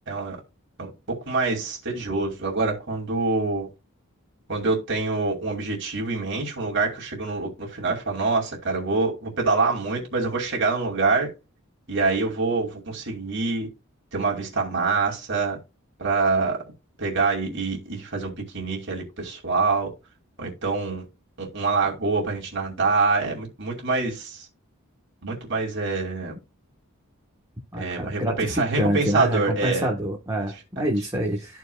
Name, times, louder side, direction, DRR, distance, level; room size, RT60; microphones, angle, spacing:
voice 1, 0.1-0.4 0.8-3.7 4.5-11.3 11.9-13.7 14.1-15.6 16.0-16.6 17.0-19.9 20.4-21.0 21.4-24.5 25.2-26.4 27.8-29.9 30.8-30.9, right 3 dB, 55° right, 2.5 m, -25 dB
voice 2, 27.7-31.6, equal, 15° right, 1.3 m, -27 dB
13.5 x 4.8 x 2.3 m
head